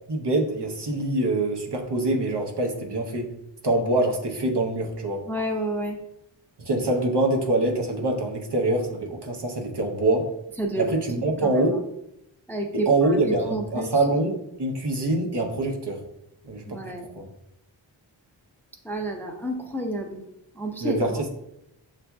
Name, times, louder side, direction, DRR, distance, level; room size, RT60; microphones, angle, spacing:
voice 1, 0.1-3.3 3.6-5.2 6.6-10.3 10.8-11.8 12.7-16.0 16.4-16.9 17.1-17.3 20.8-21.3, right 2 dB, 60° right, 1 dB, 0.8 m, -25 dB
voice 2, 5.3-6.0 10.6-10.9 11.2-11.7 12.5-13.9 16.7-17.1 18.8-20.2 20.6-21.0, right 1 dB, 5° left, 2 dB, 0.4 m, -30 dB
7.0 x 2.5 x 2.3 m, 0.83 s
wide cardioid pair, 65°, 47 cm